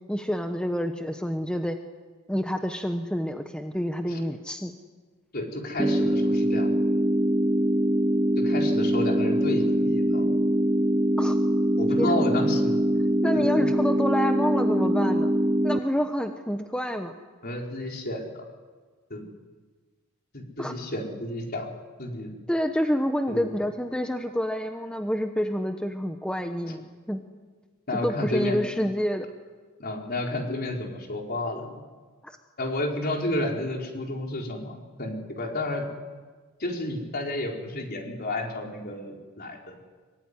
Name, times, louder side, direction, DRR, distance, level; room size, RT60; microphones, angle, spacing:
voice 1, 0.1-1.8 2.3-4.7 11.2-11.4 12.0-12.5 13.2-15.3 15.6-17.2 20.6-20.7 22.5-27.2 28.0-29.3 32.2-32.4, equal, 5° left, 5 dB, 1.1 m, -28 dB
voice 2, 5.3-6.8 8.4-10.4 11.8-12.8 13.3-13.7 17.4-18.4 19.1-19.2 20.3-21.7 22.0-22.3 23.3-23.5 26.7-26.8 27.9-28.6 29.8-31.8 32.6-35.9 36.6-39.8, left 1 dB, 45° left, 1 dB, 4.7 m, -31 dB
sound 1, 5.8-15.8, equal, 15° right, 0.8 m, -23 dB
24.0 x 23.5 x 9.8 m, 1.4 s
head